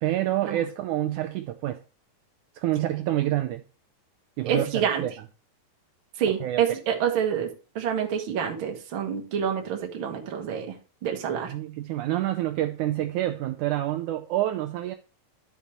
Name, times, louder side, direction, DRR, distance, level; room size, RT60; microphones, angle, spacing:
voice 1, 0.0-1.8 2.6-3.6 4.4-5.1 6.4-6.6 11.5-14.9, right 14 dB, 85° right, 1.8 m, -27 dB
voice 2, 4.4-5.0 6.2-10.8 11.0-11.5, right 8 dB, 50° right, 1.6 m, -27 dB
11.5 x 5.5 x 3.1 m
omnidirectional pair, 4.1 m